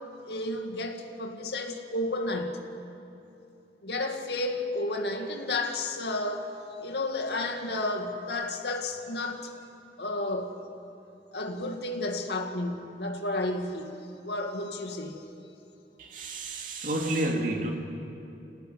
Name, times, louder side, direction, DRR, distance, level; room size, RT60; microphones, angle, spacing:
voice 1, 0.3-2.6 3.8-9.5 10.0-10.6 11.3-13.9 14.2-15.2, left 2 dB, 75° left, 4 dB, 2.2 m, -32 dB
voice 2, 16.0-17.7, right 1 dB, 50° right, 1 dB, 2.5 m, -30 dB
25.5 x 17.5 x 9.6 m, 2.8 s
head